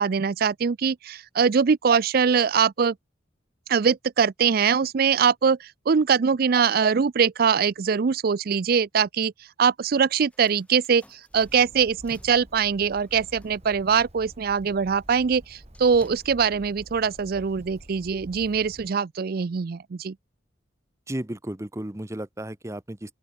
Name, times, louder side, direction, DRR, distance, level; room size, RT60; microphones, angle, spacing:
voice 1, 0.0-3.0 3.7-9.3 9.6-20.2, right 6 dB, 50° right, 0.4 m, -22 dB
sound 1, 10.3-16.3, equal, 5° left, 5.8 m, -55 dB
Bird, 11.3-18.9, right 1 dB, 35° right, 2.6 m, -48 dB
voice 2, 21.1-23.2, right 1 dB, 15° right, 1.0 m, -34 dB
open air
head